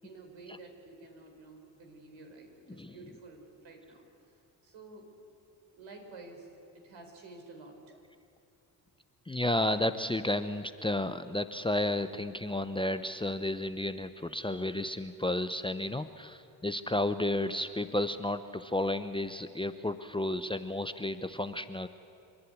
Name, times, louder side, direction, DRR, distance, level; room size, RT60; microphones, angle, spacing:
voice 1, 0.0-4.0 4.6-5.1 5.7-6.5 6.7-8.0, right 3 dB, 65° right, 2 dB, 4.6 m, -50 dB
voice 2, 9.3-21.9, left 1 dB, 10° left, 10 dB, 0.8 m, -32 dB
28.5 x 11.5 x 9.7 m, 2.8 s
hypercardioid pair, 45°, 49 cm